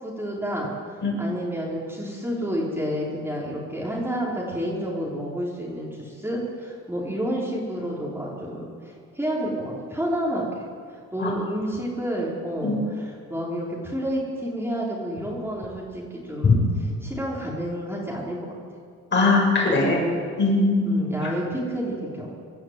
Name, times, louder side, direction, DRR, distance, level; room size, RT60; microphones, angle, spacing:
voice 1, 0.0-16.6 17.0-18.5 19.6-20.0 20.8-22.3, equal, 10° right, -5 dB, 4.7 m, -30 dB
voice 2, 19.1-20.0 20.4-21.1, left 3 dB, 35° left, -2 dB, 7.6 m, -20 dB
26.5 x 10.5 x 9.4 m, 2.2 s
cardioid pair, 90°, 30 cm